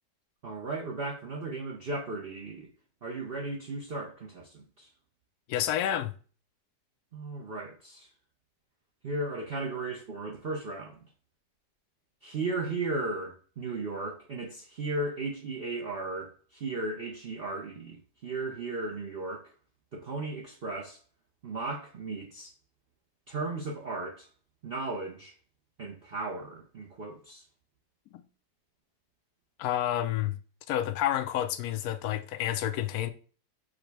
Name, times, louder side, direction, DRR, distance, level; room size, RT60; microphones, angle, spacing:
voice 1, 0.4-2.7 3.0-4.9 7.1-8.1 9.0-11.0 12.2-19.5 19.9-21.0 21.4-22.5 23.3-24.3 24.6-25.3 25.8-27.4, right 2 dB, 50° right, 0.7 m, -36 dB
voice 2, 5.5-6.1 28.1-28.2 29.6-30.4 30.7-33.1, left 11 dB, 70° left, 1.0 m, -29 dB
5.0 x 2.2 x 4.6 m
omnidirectional pair, 1.7 m